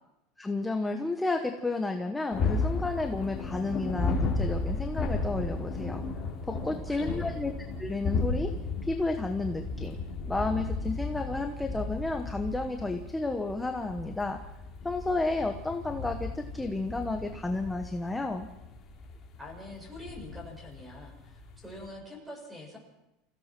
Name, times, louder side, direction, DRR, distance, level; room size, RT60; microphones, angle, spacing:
voice 1, 0.4-6.0 6.4-7.5 7.8-8.5 8.9-10.0 10.3-14.4 14.8-18.5, left 2 dB, 5° left, 4 dB, 1.2 m, -32 dB
sound 1, 2.3-21.9, left 3 dB, 25° left, 4.0 m, -34 dB
voice 2, 6.5-7.3 19.4-22.8, left 1 dB, 10° right, 2 dB, 6.6 m, -44 dB
27.0 x 16.0 x 6.1 m, 0.95 s
supercardioid pair, 150°, 0 cm